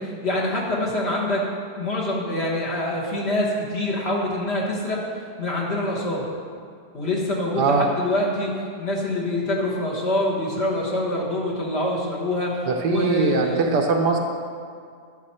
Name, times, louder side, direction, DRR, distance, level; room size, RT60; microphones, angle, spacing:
voice 1, 0.0-1.4 1.8-6.3 6.9-8.5 8.8-13.6, left 1 dB, 40° left, -4 dB, 1.6 m, -25 dB
voice 2, 12.7-14.2, right 4 dB, 75° right, 3 dB, 1.4 m, -21 dB
11.0 x 7.0 x 4.3 m, 2.2 s
omnidirectional pair, 1.8 m